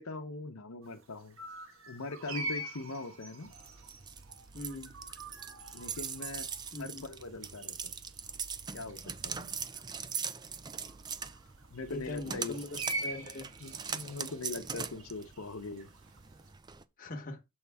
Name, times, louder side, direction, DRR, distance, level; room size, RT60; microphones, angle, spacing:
voice 1, 0.0-1.4 1.9-3.5 5.7-6.5 6.8-7.8 8.7-9.0 9.2-9.5 11.7-12.7 13.6-15.9, left 3 dB, 75° left, 0.8 m, -41 dB
sound 1, 0.8-16.5, right 2 dB, 65° right, 1.3 m, -46 dB
sound 2, 3.5-16.8, right 6 dB, 20° right, 0.4 m, -41 dB
voice 2, 4.5-4.9 6.7-7.0 11.9-12.7 13.0-13.5 17.0-17.4, left 1 dB, 40° left, 1.1 m, -41 dB
7.1 x 5.4 x 3.5 m
head